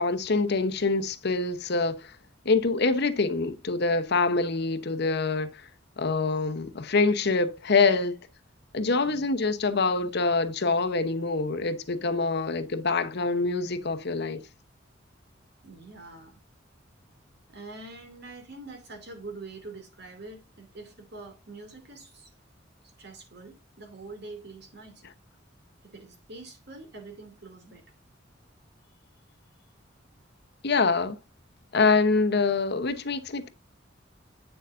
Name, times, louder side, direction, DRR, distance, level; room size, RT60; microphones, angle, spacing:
voice 1, 0.0-2.2 2.4-5.7 6.0-8.3 8.7-14.4 30.6-31.2 31.7-33.5, left 3 dB, 60° left, 0.9 m, -25 dB
voice 2, 8.9-9.3 15.6-16.4 17.5-22.3 22.8-25.1 25.8-27.8, right 3 dB, 60° right, 2.7 m, -45 dB
8.9 x 6.8 x 2.6 m
head